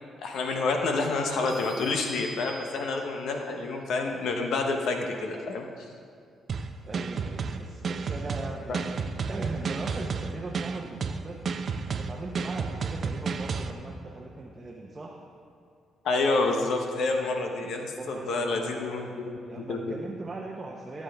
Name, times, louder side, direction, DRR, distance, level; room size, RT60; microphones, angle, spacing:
voice 1, 0.2-5.8 8.7-8.8 16.0-20.0, left 3 dB, 75° left, 3 dB, 0.9 m, -28 dB
sound 1, 1.5-3.2, right 1 dB, ahead, 1.5 m, -44 dB
sound 2, 6.5-13.7, right 5 dB, 50° right, 0.5 m, -31 dB
voice 2, 6.8-9.0 9.3-11.4 11.9-15.2 17.6-21.0, right 2 dB, 30° right, -1 dB, 0.9 m, -39 dB
15.0 x 7.4 x 3.5 m, 2.3 s
cardioid pair, 90°, 0 cm